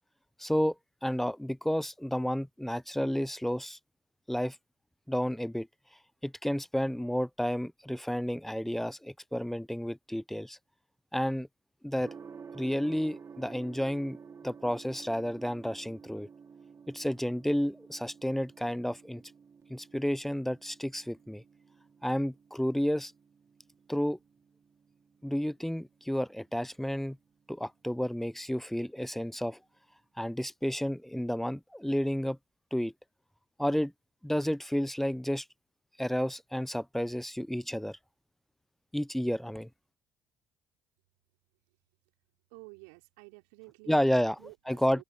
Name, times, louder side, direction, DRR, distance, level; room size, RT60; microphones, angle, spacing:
voice 1, 0.4-0.8 1.0-3.8 4.3-4.6 5.1-5.7 6.2-10.6 11.1-11.5 11.8-12.1 12.5-14.2 14.4-16.3 16.9-19.2 19.7-21.4 22.0-23.1 23.9-24.2 25.2-27.2 27.5-29.6 30.2-32.4 32.7-32.9 33.6-33.9 34.2-35.4 36.0-38.0 38.9-39.7 43.9-44.3 44.7-45.0, equal, 5° left, 1.0 m, -31 dB
Gong, 12.0-29.9, right 6 dB, 40° right, 5.1 m, -53 dB
voice 2, 42.5-45.0, right 34 dB, 75° right, 6.0 m, -52 dB
open air
hypercardioid pair, 50°, 7 cm